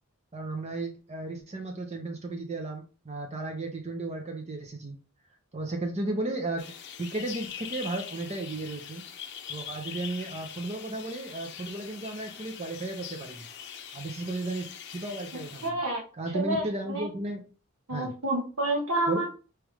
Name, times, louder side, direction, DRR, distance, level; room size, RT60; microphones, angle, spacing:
voice 1, 0.3-5.0 5.5-6.7 7.0-9.0 9.5-13.5 13.9-15.8 16.2-17.4 17.9-18.1 19.1-19.2, right 2 dB, 30° right, 4 dB, 0.6 m, -34 dB
sound 1, 6.6-15.7, left 8 dB, 55° left, 0.6 m, -43 dB
voice 2, 15.6-16.0 16.3-16.6 16.9-17.1 17.9-19.3, right 1 dB, 75° right, 0 dB, 1.2 m, -28 dB
3.4 x 3.1 x 4.8 m, 0.36 s
head